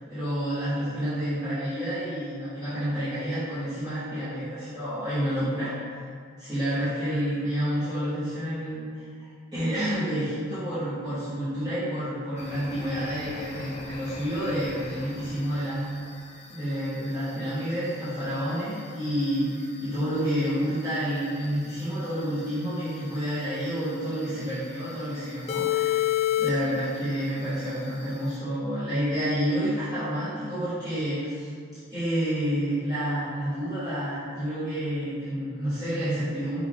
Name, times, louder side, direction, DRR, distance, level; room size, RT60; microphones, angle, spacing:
voice 1, 0.1-15.8 16.5-26.1 26.4-31.5 31.9-36.6, equal, 20° right, -16 dB, 1.1 m, -29 dB
sound 1, 12.4-28.4, left 11 dB, 30° left, 0.4 m, -35 dB
5.4 x 2.5 x 3.5 m, 2.2 s
head